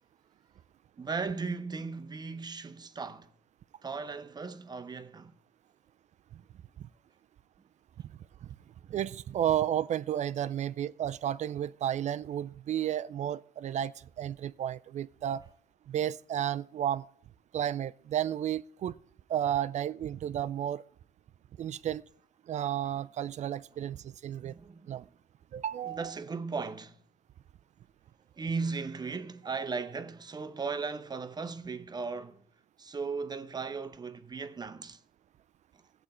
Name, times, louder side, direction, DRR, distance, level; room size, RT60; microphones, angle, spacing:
voice 1, 1.0-3.3 3.8-5.3 23.7-24.0 24.4-25.0 25.8-27.0 28.3-32.4 32.8-35.0, right 4 dB, 25° right, 0.7 m, -37 dB
voice 2, 8.9-15.4 15.9-17.0 17.5-18.9 19.3-20.8 21.6-22.0 22.5-24.5 24.9-25.0 25.5-26.1, right 10 dB, 45° right, 0.4 m, -32 dB
15.0 x 7.9 x 4.3 m
cardioid pair, 110°, 17 cm